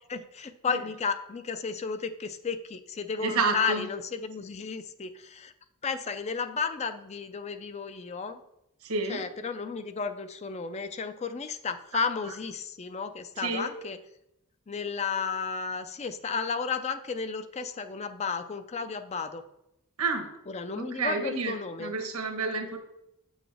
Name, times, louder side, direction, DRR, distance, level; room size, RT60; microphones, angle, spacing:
voice 1, 0.1-5.5 5.8-8.4 9.1-14.0 14.7-19.4 20.5-21.9, left 5 dB, 30° left, 10 dB, 0.4 m, -33 dB
voice 2, 3.2-3.9 8.8-9.2 13.4-13.7 20.0-20.3 20.8-22.8, right 3 dB, 85° right, 4 dB, 1.2 m, -30 dB
8.4 x 6.3 x 3.4 m, 0.84 s
head